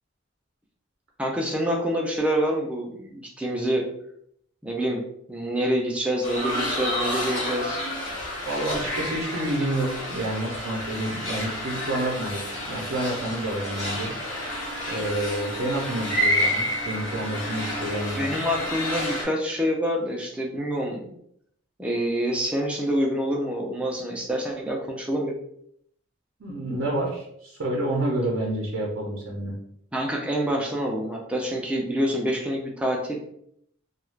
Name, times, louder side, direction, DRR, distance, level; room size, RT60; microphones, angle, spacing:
voice 1, 1.2-3.8 4.6-5.0 5.3-7.8 18.2-21.1 21.8-25.3 29.9-33.2, equal, 5° right, -1 dB, 0.4 m, -26 dB
sound 1, 6.2-19.2, equal, 70° left, 1.1 m, -30 dB
voice 2, 8.5-12.4 12.7-14.1 14.9-18.4 26.4-29.5, right 1 dB, 70° right, -2 dB, 0.6 m, -29 dB
2.3 x 2.3 x 3.2 m, 0.71 s
head